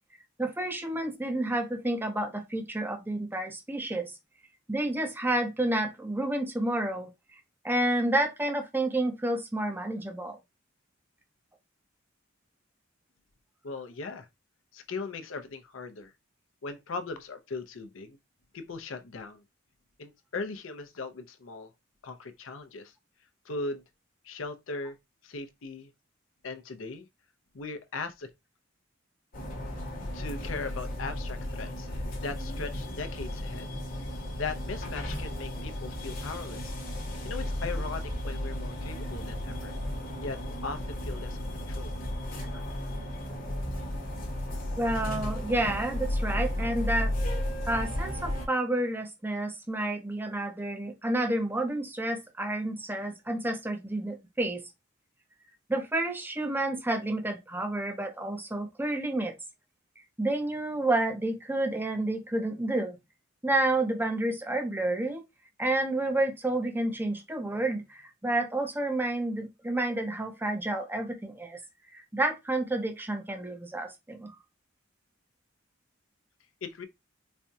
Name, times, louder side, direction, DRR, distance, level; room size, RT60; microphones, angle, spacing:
voice 1, 0.4-4.1 4.7-7.1 7.6-10.4 42.5-42.6 44.8-47.1 47.6-54.6 55.7-59.3 60.2-63.0 63.4-65.2 65.6-71.6 71.9-74.3, right 1 dB, 10° right, 0.6 m, -30 dB
voice 2, 13.6-14.3 14.7-16.1 16.6-18.2 18.5-19.4 20.0-21.7 22.0-22.9 23.4-23.8 24.2-25.0 25.2-25.9 26.4-27.1 27.5-28.3 30.1-31.9 32.2-33.7 34.4-36.7 37.2-39.8 40.2-40.4 40.6-41.9 76.6-76.8, left 3 dB, 75° left, 0.6 m, -38 dB
sound 1, 29.3-48.5, left 1 dB, 45° left, 1.1 m, -34 dB
4.2 x 2.3 x 2.6 m
head